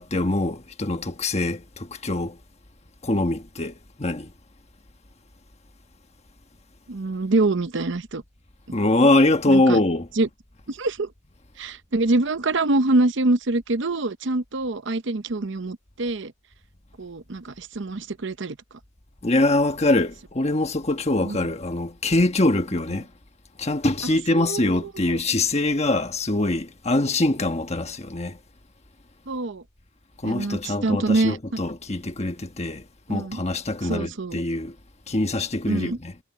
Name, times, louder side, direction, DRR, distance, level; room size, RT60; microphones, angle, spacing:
voice 1, 0.0-2.4 3.0-4.3 8.7-10.1 19.2-23.1 23.6-28.4 30.2-32.8 33.1-34.7 35.1-36.1, left 2 dB, 30° left, 1.4 m, -23 dB
voice 2, 6.9-8.2 9.5-9.8 10.2-10.3 10.7-11.1 11.6-16.3 17.0-18.6 21.2-21.4 24.0-25.2 29.3-29.6 30.2-31.6 33.1-33.4 33.8-34.4 35.6-36.0, right 2 dB, 60° right, 0.8 m, -25 dB
head